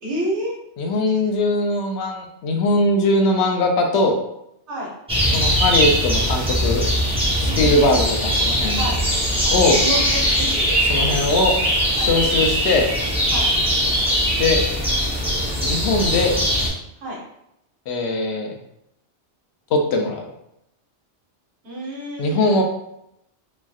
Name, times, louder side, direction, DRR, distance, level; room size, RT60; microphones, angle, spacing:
voice 1, 0.0-0.5 0.9-1.3 4.7-4.9 7.4-8.0 8.7-9.0 9.3-12.1 13.3-13.5 15.0-15.4 16.9-17.2 21.6-22.6, right 1 dB, 75° right, -5 dB, 1.3 m, -31 dB
voice 2, 0.8-4.2 5.3-6.9 7.4-8.8 9.5-9.8 10.9-11.5 11.9-12.9 14.4-14.6 15.6-16.3 17.9-18.5 19.7-20.3 22.2-22.6, left 2 dB, 70° left, 2 dB, 0.8 m, -20 dB
sound 1, 5.1-16.7, equal, 5° right, 0.6 m, -20 dB
3.1 x 2.5 x 2.3 m, 0.79 s
omnidirectional pair, 1.2 m